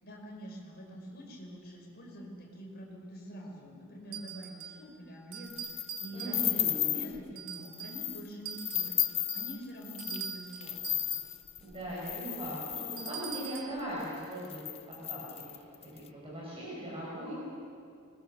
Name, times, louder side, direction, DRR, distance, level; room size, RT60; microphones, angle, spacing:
voice 1, 0.0-11.2, equal, 45° left, 0 dB, 5.2 m, -46 dB
sound 1, 4.1-4.9 5.3-6.7 7.3-8.1 8.4-11.4 13.0-13.8, right 9 dB, 75° right, 1.9 m, -44 dB
sound 2, 5.5-7.2 7.6-8.2 8.5-13.6 14.1-14.2 14.4-16.0, left 12 dB, 25° left, 0.5 m, -34 dB
voice 2, 6.1-7.0 11.6-14.6 14.9-15.4 15.9-17.3, equal, 25° right, -7 dB, 6.4 m, -39 dB
26.0 x 21.0 x 7.0 m, 2.4 s
head